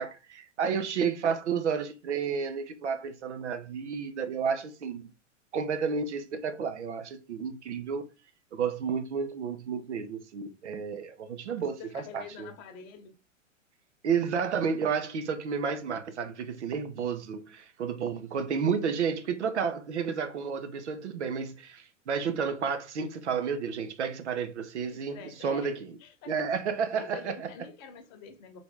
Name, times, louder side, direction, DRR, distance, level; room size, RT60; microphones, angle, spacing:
voice 1, 0.0-5.0 5.5-8.0 8.5-12.5 14.0-25.8 26.3-27.5, right 6 dB, 60° right, 0.8 m, -31 dB
voice 2, 11.4-13.1 24.9-25.7 26.0-26.3 26.9-28.6, left 6 dB, 35° left, 1.0 m, -46 dB
3.9 x 3.3 x 3.7 m
figure-of-eight pair, 105°, 39 cm